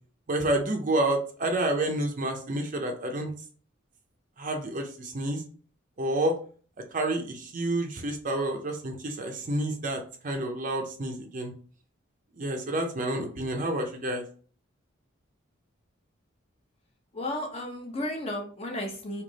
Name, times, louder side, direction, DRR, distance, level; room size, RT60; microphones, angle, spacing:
voice 1, 0.3-3.3 4.4-5.4 6.0-6.4 6.9-11.5 12.4-14.2, right 1 dB, 40° right, 3 dB, 0.6 m, -29 dB
voice 2, 17.1-19.2, left 1 dB, 30° left, 1 dB, 0.8 m, -33 dB
3.3 x 2.9 x 3.9 m, 0.43 s
head